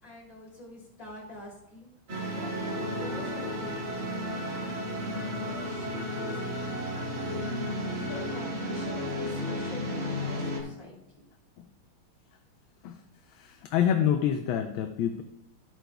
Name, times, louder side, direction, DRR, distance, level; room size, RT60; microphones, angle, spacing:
voice 1, 0.0-1.9 2.3-4.7 5.1-6.4 6.9-11.2, equal, 40° left, -6 dB, 4.0 m, -46 dB
sound 1, 2.1-10.6, equal, 70° right, 2.6 m, -33 dB
voice 2, 13.4-15.2, left 9 dB, 75° left, 6 dB, 1.3 m, -27 dB
12.5 x 8.9 x 2.3 m, 0.86 s
omnidirectional pair, 2.4 m